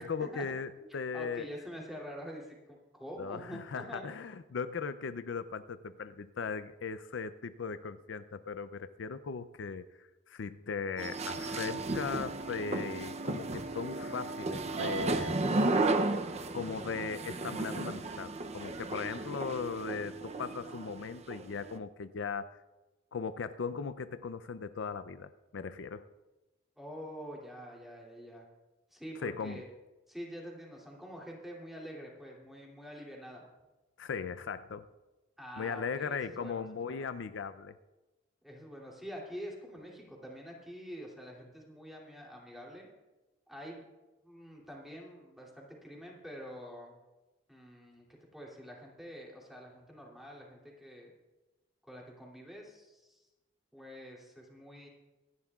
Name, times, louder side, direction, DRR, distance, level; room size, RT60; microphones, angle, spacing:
voice 1, 0.0-1.5 3.2-15.5 16.5-22.6 23.1-26.1 29.2-29.6 34.0-34.8 35.6-37.7, left 5 dB, 75° left, 12 dB, 0.5 m, -38 dB
voice 2, 0.8-4.0 26.8-28.5 28.9-29.7 30.1-33.5 35.4-37.1 38.4-42.9 43.5-43.9 44.2-47.0 47.5-48.0 48.3-51.1 51.8-53.3 53.7-54.9, equal, ahead, -3 dB, 2.7 m, -46 dB
sound 1, 11.0-21.8, right 2 dB, 35° right, 0.6 m, -34 dB
26.0 x 11.0 x 2.4 m, 1.1 s
head